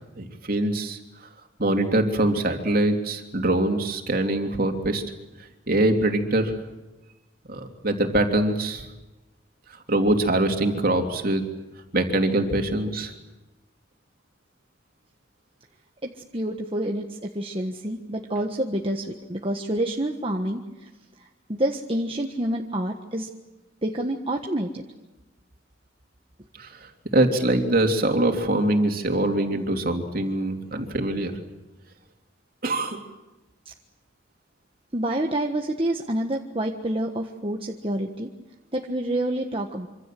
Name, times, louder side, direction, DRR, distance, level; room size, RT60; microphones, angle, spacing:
voice 1, 0.1-1.0 1.6-5.0 5.7-6.5 7.5-8.9 9.9-11.4 11.9-13.1 26.6-31.4 32.6-33.0, right 1 dB, 50° right, 4 dB, 3.2 m, -23 dB
voice 2, 16.0-20.6 21.5-23.3 23.8-24.8 34.9-38.3 38.7-39.9, right 1 dB, 30° right, 2 dB, 1.5 m, -28 dB
26.5 x 26.0 x 7.7 m, 1.1 s
head